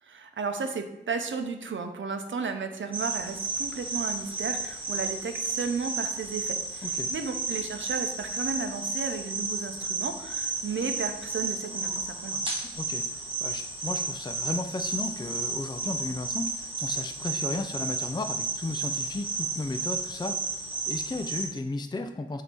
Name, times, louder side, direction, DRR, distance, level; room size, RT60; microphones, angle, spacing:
voice 1, 0.0-12.4, right 5 dB, 85° right, 6 dB, 0.7 m, -34 dB
sound 1, 2.9-21.5, right 3 dB, 30° right, 1.4 m, -32 dB
voice 2, 6.8-7.1 12.7-22.4, left 2 dB, 25° left, 7 dB, 0.4 m, -34 dB
7.7 x 2.8 x 6.0 m, 0.88 s
wide cardioid pair, 100°, 19 cm